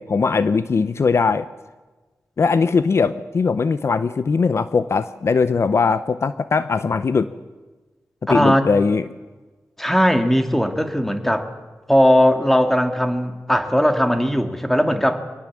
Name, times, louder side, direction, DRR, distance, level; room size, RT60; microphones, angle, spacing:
voice 1, 0.0-1.5 2.4-7.3 8.3-9.0, left 5 dB, 55° left, 13 dB, 0.7 m, -20 dB
voice 2, 8.3-8.7 9.8-11.5 11.9-15.2, equal, 5° left, 6 dB, 2.1 m, -18 dB
25.0 x 18.5 x 7.5 m, 1.2 s
wide cardioid pair, 100°, 5 cm